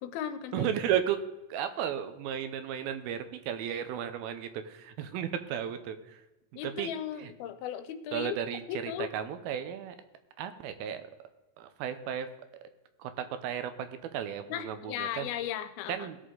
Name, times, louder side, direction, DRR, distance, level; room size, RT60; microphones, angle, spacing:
voice 1, 0.0-0.7 6.6-8.4 8.7-9.1 14.5-16.1, left 10 dB, 90° left, 10 dB, 2.7 m, -36 dB
voice 2, 0.5-1.2 1.5-6.2 6.6-6.9 7.2-7.3 8.1-10.0 10.4-11.1 11.6-12.3 13.0-15.3 15.9-16.2, right 9 dB, 85° right, 10 dB, 2.6 m, -34 dB
18.5 x 6.5 x 3.8 m, 1.0 s
omnidirectional pair, 4.3 m